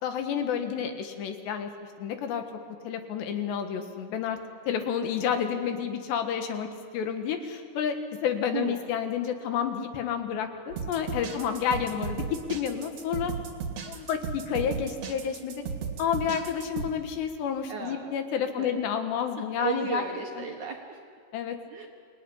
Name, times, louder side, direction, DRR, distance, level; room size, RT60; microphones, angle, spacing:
voice 1, 0.0-1.7 2.0-2.4 2.8-4.4 4.7-6.7 6.9-8.0 8.2-13.3 13.8-15.6 16.0-20.0 20.4-20.5 21.3-21.6, left 8 dB, 75° left, 6 dB, 3.7 m, -30 dB
voice 2, 8.5-8.8 11.1-11.4 17.7-18.2 18.5-18.8 19.4-21.0 21.7-21.9, right 7 dB, 60° right, 1 dB, 2.1 m, -35 dB
sound 1, 10.7-16.9, right 6 dB, 45° right, 2.7 m, -35 dB
27.0 x 18.5 x 10.0 m, 2.2 s
omnidirectional pair, 5.1 m